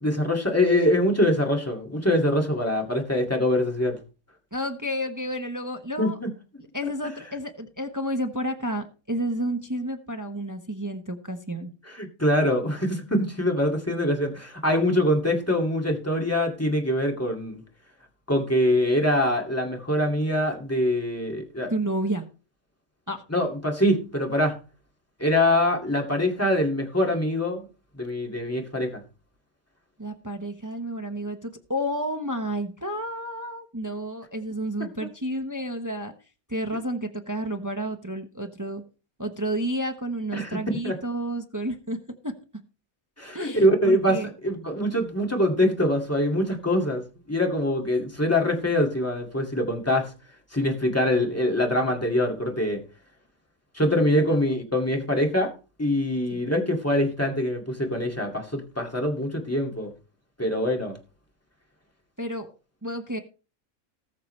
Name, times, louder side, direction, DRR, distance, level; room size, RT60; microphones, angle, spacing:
voice 1, 0.0-4.0 6.0-6.3 11.9-17.6 18.3-21.7 23.3-24.6 25.2-27.7 28.0-29.0 40.3-40.6 40.8-40.9 43.2-44.2 44.4-50.1 50.5-52.8 53.7-55.5 55.8-59.9 60.4-61.0, left 1 dB, 10° left, 1 dB, 2.2 m, -24 dB
voice 2, 4.5-6.2 6.7-11.7 21.7-22.2 23.1-23.2 30.0-36.1 36.5-38.8 39.2-42.3 43.3-44.3 54.3-54.4 56.3-56.4 62.2-62.5 62.8-63.2, right 1 dB, 15° right, 5 dB, 0.9 m, -31 dB
19.0 x 6.8 x 3.2 m, 0.34 s
omnidirectional pair, 1.5 m